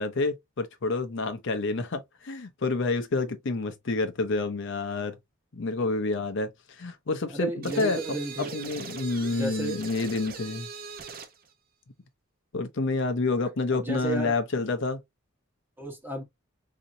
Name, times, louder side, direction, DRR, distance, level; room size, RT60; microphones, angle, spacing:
voice 1, 0.0-5.2 5.5-8.0 8.4-10.7 12.5-15.0, left 3 dB, 60° left, 0.6 m, -28 dB
voice 2, 7.3-8.7 9.3-9.8 13.7-14.3 15.8-16.2, right 2 dB, 10° right, 1.0 m, -33 dB
sound 1, 7.6-11.4, right 4 dB, 40° right, 0.6 m, -40 dB
4.2 x 2.8 x 2.5 m
head